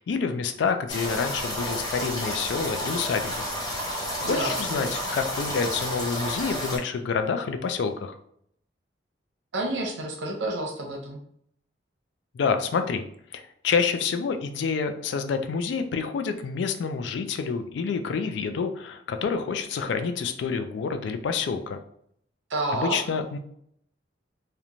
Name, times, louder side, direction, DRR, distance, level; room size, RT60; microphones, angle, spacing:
voice 1, 0.0-3.4 4.3-8.1 12.3-13.1 13.3-21.8 22.7-23.4, left 5 dB, 70° left, 8 dB, 0.3 m, -28 dB
sound 1, 0.9-6.8, equal, 20° left, 0.7 m, -31 dB
voice 2, 4.2-4.8 9.5-11.2 22.5-23.0, right 2 dB, 90° right, 1 dB, 0.7 m, -29 dB
2.9 x 2.1 x 2.5 m, 0.70 s
head